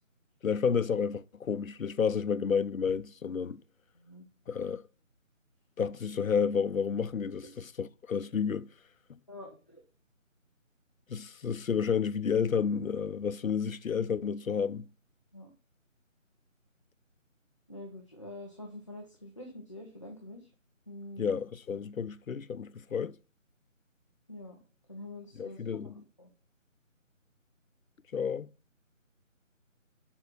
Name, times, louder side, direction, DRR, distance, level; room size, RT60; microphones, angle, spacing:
voice 1, 0.4-3.6 4.5-4.8 5.8-8.7 11.1-14.9 21.2-23.1 25.4-26.0 28.1-28.5, left 6 dB, 90° left, 0.7 m, -31 dB
voice 2, 3.9-4.3 7.4-7.5 9.3-9.8 15.3-15.5 17.7-20.5 20.9-21.4 24.3-24.6 24.9-26.3, left 1 dB, 25° left, 0.8 m, -46 dB
7.2 x 5.4 x 6.0 m
figure-of-eight pair, 170°, 40 cm